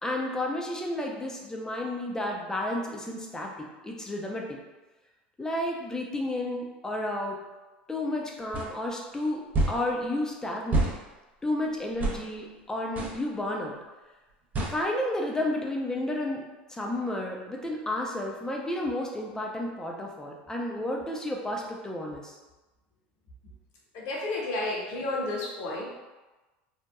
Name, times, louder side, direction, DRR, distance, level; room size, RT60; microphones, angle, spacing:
voice 1, 0.0-4.6 5.4-7.4 7.9-10.9 11.4-13.8 14.7-22.4, left 1 dB, 10° left, -1 dB, 0.5 m, -32 dB
sound 1, 8.5-8.7 9.5-9.8 10.7-11.0 12.0-12.2 13.0-13.2 14.5-14.8, right 2 dB, 35° right, 0.6 m, -26 dB
voice 2, 23.9-25.8, left 2 dB, 60° left, -4 dB, 0.8 m, -31 dB
2.9 x 2.1 x 2.3 m, 1.1 s
hypercardioid pair, 85°, 5 cm